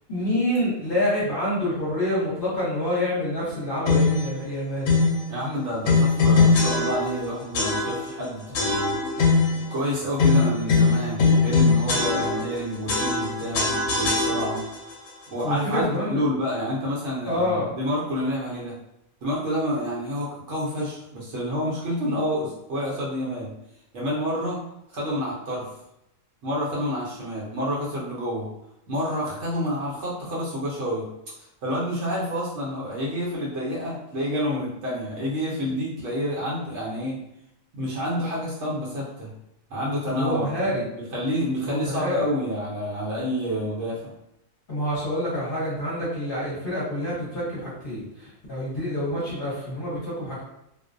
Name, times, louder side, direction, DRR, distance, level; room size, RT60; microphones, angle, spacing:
voice 1, 0.1-4.9 11.9-12.3 15.4-16.2 17.2-17.7 40.1-40.9 41.6-42.3 44.7-50.4, left 1 dB, 45° left, -8 dB, 0.9 m, -27 dB
sound 1, 3.9-4.3 4.9-5.2 5.8-7.2 7.5-8.2 8.5-9.6 10.2-12.6 12.9-14.8, left 4 dB, 75° left, 1.0 m, -21 dB
voice 2, 5.3-9.0 9.7-14.6 15.3-18.8 19.2-23.5 23.9-24.6 24.9-25.7 26.4-28.5 28.9-31.1 31.4-37.2 37.7-39.3 39.7-44.1, equal, 60° right, -5 dB, 0.9 m, -28 dB
2.4 x 2.1 x 2.5 m, 0.83 s
omnidirectional pair, 1.4 m